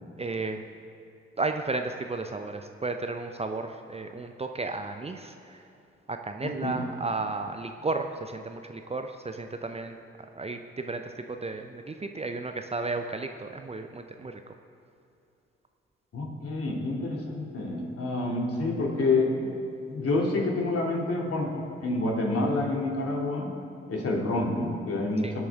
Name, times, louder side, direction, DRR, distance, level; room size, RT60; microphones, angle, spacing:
voice 1, 0.2-0.6 1.4-5.6 6.1-10.0 10.3-14.4 25.2-25.3, right 3 dB, 20° right, 6 dB, 0.7 m, -33 dB
voice 2, 6.4-6.8 16.1-19.5 19.9-23.5 23.9-25.5, left 2 dB, 50° left, -1 dB, 2.9 m, -28 dB
25.0 x 8.5 x 3.7 m, 2.7 s
figure-of-eight pair, 40°, 31 cm